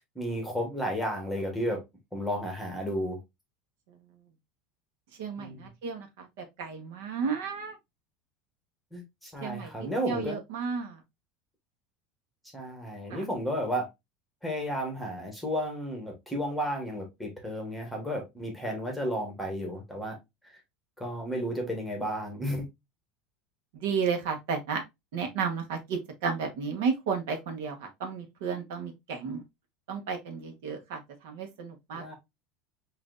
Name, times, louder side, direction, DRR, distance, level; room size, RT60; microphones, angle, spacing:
voice 1, 0.1-1.8 2.1-3.2 5.4-5.7 8.9-10.4 12.5-13.9 14.4-20.2 20.4-20.5 21.0-22.7 31.9-32.2, equal, ahead, 1.1 m, -33 dB
voice 2, 5.2-7.8 9.4-11.0 13.1-13.2 23.7-24.8 25.1-29.4 29.9-32.2, right 5 dB, 75° right, 1.0 m, -33 dB
5.8 x 2.6 x 2.4 m
supercardioid pair, 170°, 0 cm